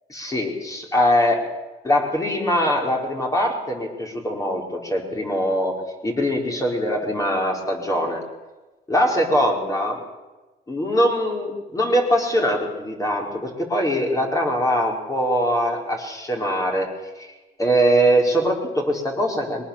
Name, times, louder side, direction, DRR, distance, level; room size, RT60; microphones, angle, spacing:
voice 1, 0.1-1.4 1.8-5.8 6.0-8.2 8.9-10.0 10.7-16.9 17.6-19.6, equal, 20° left, 1 dB, 4.6 m, -22 dB
22.0 x 19.0 x 7.3 m, 1.2 s
cardioid pair, 110°, 17 cm